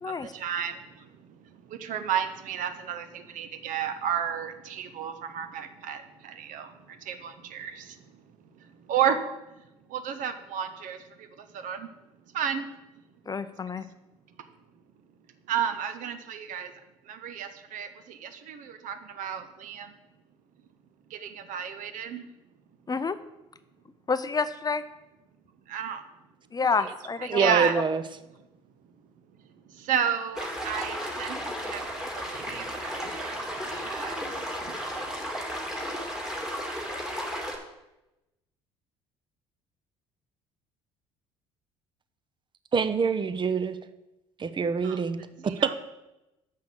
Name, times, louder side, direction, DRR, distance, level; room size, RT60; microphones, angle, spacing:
voice 1, 0.1-0.8 1.8-6.7 7.1-7.8 8.9-9.2 9.9-11.0 11.6-11.9 12.3-12.7 15.5-16.7 17.1-19.9 21.1-22.2 25.7-26.0 26.8-26.9 27.2-27.7 29.9-31.8 32.3-33.4 33.7-34.1 44.8-45.0 45.4-45.7, right 8 dB, 60° right, 9 dB, 0.9 m, -32 dB
voice 2, 13.3-13.9 22.9-23.2 24.1-24.8 26.5-27.6, left 4 dB, 25° left, 13 dB, 0.5 m, -28 dB
voice 3, 27.3-28.0 42.7-43.8 44.4-45.7, right 5 dB, 30° right, 11 dB, 0.7 m, -26 dB
sound 1, 30.4-37.6, equal, 5° right, 2.3 m, -34 dB
6.5 x 5.7 x 7.3 m, 0.96 s
hypercardioid pair, 60°, 15 cm